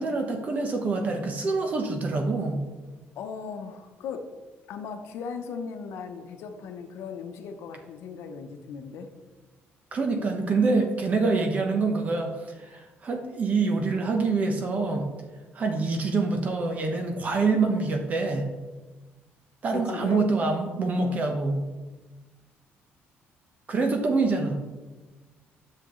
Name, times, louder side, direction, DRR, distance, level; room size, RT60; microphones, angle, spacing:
voice 1, 0.0-2.6 9.9-12.3 12.6-15.1 15.5-18.4 19.6-21.6 23.7-24.6, right 3 dB, 35° right, 4 dB, 1.1 m, -25 dB
voice 2, 3.2-4.2 4.7-9.1 19.7-20.2, left 5 dB, 80° left, 5 dB, 0.9 m, -37 dB
10.5 x 6.6 x 3.2 m, 1.2 s
cardioid pair, 160°, 4 cm